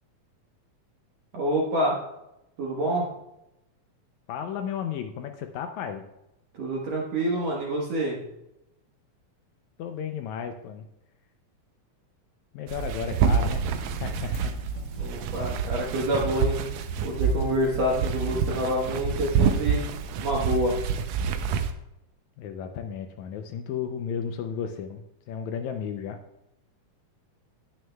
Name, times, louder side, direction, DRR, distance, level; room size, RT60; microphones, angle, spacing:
voice 1, 1.3-2.0 2.6-3.1 6.5-8.2 15.0-16.6 17.0-19.9 20.2-20.8, right 1 dB, 60° right, -3 dB, 2.3 m, -27 dB
voice 2, 4.3-6.0 9.8-10.9 12.5-13.7 14.0-14.6 22.4-26.2, left 7 dB, 75° left, 6 dB, 1.8 m, -34 dB
sound 1, 12.7-21.7, right 6 dB, 85° right, 1.5 m, -27 dB
Fire, 13.5-20.0, right 1 dB, 40° left, 1.8 m, -46 dB
18.5 x 6.2 x 2.3 m, 0.89 s
omnidirectional pair, 3.7 m